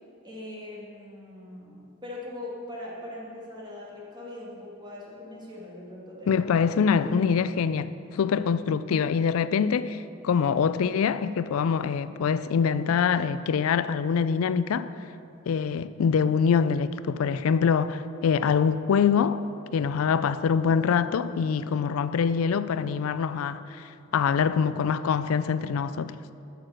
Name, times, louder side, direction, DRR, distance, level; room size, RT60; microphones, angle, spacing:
voice 1, 0.2-6.8, left 1 dB, 20° right, 1.9 m, -41 dB
voice 2, 6.3-14.9 15.5-19.4 19.7-26.1, left 6 dB, 75° left, 0.4 m, -24 dB
8.5 x 6.6 x 6.4 m
head